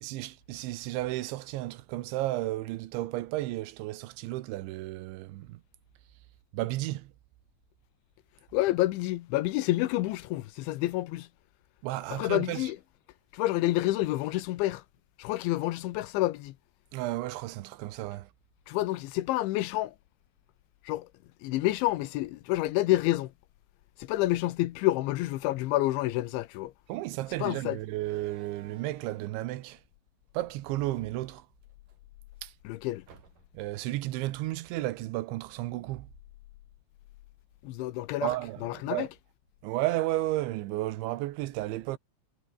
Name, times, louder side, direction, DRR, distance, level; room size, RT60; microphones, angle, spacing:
voice 1, 0.0-5.6 6.5-7.1 11.8-12.7 16.9-18.3 26.9-29.8 30.3-31.4 32.4-32.5 33.5-36.1 38.2-39.1 39.6-42.0, right 17 dB, 80° right, 3.3 m, -33 dB
voice 2, 8.5-11.3 12.1-12.8 13.3-14.8 15.2-16.5 18.7-19.9 20.9-21.1 21.4-23.3 24.0-26.7 27.4-27.8 32.6-33.0 37.6-38.3 38.6-39.1, left 17 dB, 80° left, 3.3 m, -28 dB
Slam, 26.9-27.1 27.9-29.5 30.5-32.0 32.3-32.4 33.1-33.7, right 6 dB, 45° right, 4.9 m, -53 dB
omnidirectional pair, 5.4 m